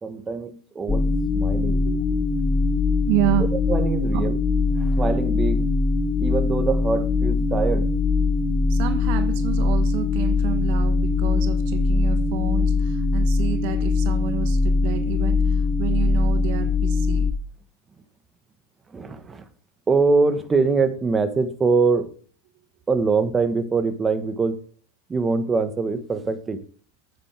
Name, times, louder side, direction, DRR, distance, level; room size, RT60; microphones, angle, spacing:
voice 1, 0.0-1.8 3.5-4.4 4.7-5.7 6.2-7.9 18.9-19.4 19.9-22.1 22.9-24.6 25.1-26.6, right 4 dB, 20° right, 1.4 m, -23 dB
sound 1, 0.9-17.3, left 3 dB, 10° left, 0.9 m, -21 dB
voice 2, 1.6-2.4 3.0-3.5 4.1-4.2 8.7-17.3, right 13 dB, 55° right, 1.1 m, -29 dB
9.2 x 9.0 x 3.5 m
hypercardioid pair, 110°, 0 cm